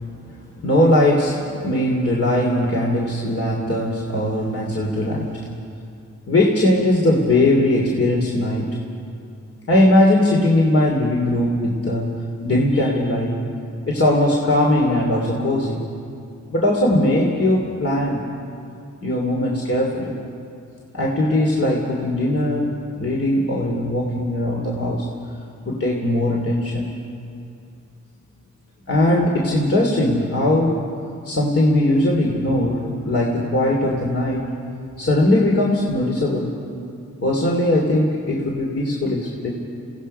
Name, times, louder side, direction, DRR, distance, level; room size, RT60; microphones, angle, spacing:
voice 1, 0.6-1.4 1.6-5.5 6.3-8.8 9.7-13.4 13.9-15.8 16.5-18.2 19.0-20.1 20.9-25.1 25.6-26.9 28.9-30.7 31.2-34.4 35.0-36.5 37.2-39.5, left 1 dB, 50° left, -2 dB, 3.1 m, -19 dB
29.0 x 17.5 x 5.7 m, 2.5 s
cardioid pair, 70°, 31 cm